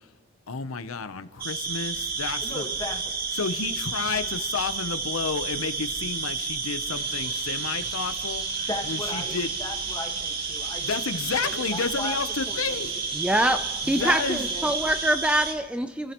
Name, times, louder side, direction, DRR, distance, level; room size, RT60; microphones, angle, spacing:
voice 1, 0.5-2.6 3.3-9.5 10.8-12.9 13.9-14.4, left 5 dB, 85° left, 11 dB, 0.8 m, -31 dB
sound 1, 1.4-15.5, right 4 dB, 45° right, 1.5 m, -31 dB
voice 2, 2.4-3.2 8.7-11.0 11.4-13.0 14.0-14.7, left 2 dB, 20° left, 1 dB, 1.5 m, -37 dB
sound 2, 6.9-15.1, right 3 dB, 25° right, 1.4 m, -41 dB
voice 3, 13.1-13.6 13.8-16.1, right 1 dB, 5° right, 8 dB, 0.4 m, -24 dB
28.5 x 15.5 x 3.0 m, 1.3 s
head